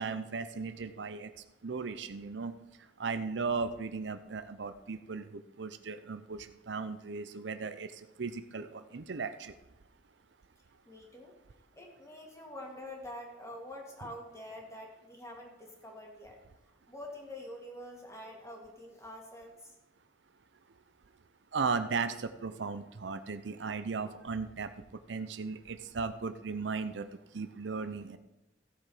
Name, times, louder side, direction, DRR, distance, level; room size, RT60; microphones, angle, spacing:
voice 1, 0.0-1.3 1.6-2.5 3.0-9.5 21.5-24.7 25.1-27.1 27.3-28.2, right 4 dB, 70° right, 10 dB, 0.6 m, -36 dB
voice 2, 10.9-11.4 11.7-16.4 16.9-19.8, left 1 dB, 15° left, 0 dB, 2.1 m, -46 dB
15.0 x 7.5 x 4.9 m, 0.96 s
head